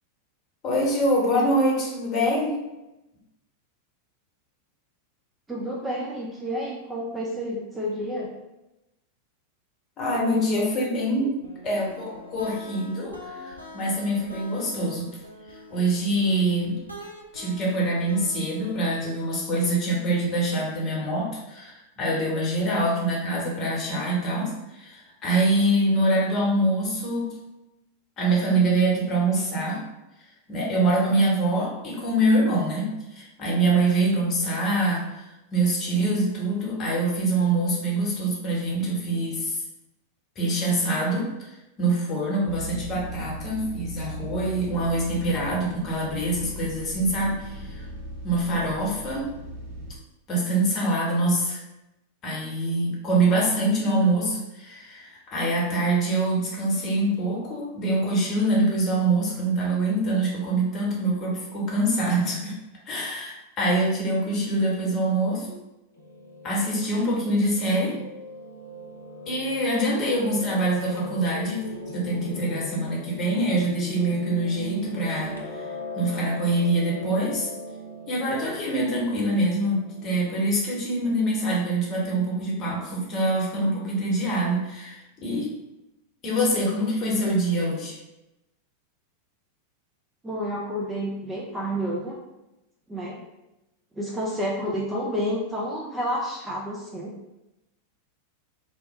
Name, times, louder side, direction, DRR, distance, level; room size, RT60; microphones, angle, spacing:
voice 1, 0.6-2.6 10.0-11.4 11.6-15.1 15.5-16.8 17.3-27.3 28.2-29.8 30.5-32.9 33.1-39.6 40.4-47.8 48.2-49.3 50.3-51.6 52.2-62.5 62.9-65.6 66.4-68.0 69.3-71.6 71.9-75.6 75.9-77.5 78.1-85.5 86.2-88.0, right 1 dB, 30° left, -4 dB, 1.0 m, -25 dB
voice 2, 5.5-8.3 90.2-92.2 92.9-93.2 94.0-97.1, equal, 10° right, -3 dB, 0.4 m, -30 dB
sound 1, 11.4-19.0, left 2 dB, 90° right, 0.5 m, -44 dB
sound 2, 42.5-50.0, right 1 dB, 45° right, 1.0 m, -38 dB
Piano, 65.9-80.4, equal, 75° left, 0.5 m, -38 dB
2.8 x 2.1 x 3.3 m, 0.95 s
figure-of-eight pair, 90°, 0 cm